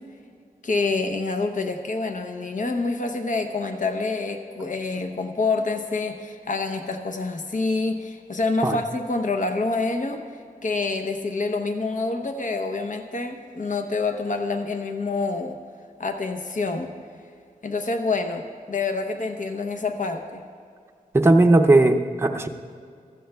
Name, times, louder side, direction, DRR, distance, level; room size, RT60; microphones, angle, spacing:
voice 1, 0.6-10.2 10.6-15.6 16.0-16.9 17.6-20.4, left 3 dB, 60° left, 5 dB, 0.8 m, -27 dB
voice 2, 21.1-22.5, right 2 dB, 15° right, 3 dB, 0.6 m, -17 dB
15.5 x 13.5 x 2.3 m, 2.3 s
wide cardioid pair, 80°, 15 cm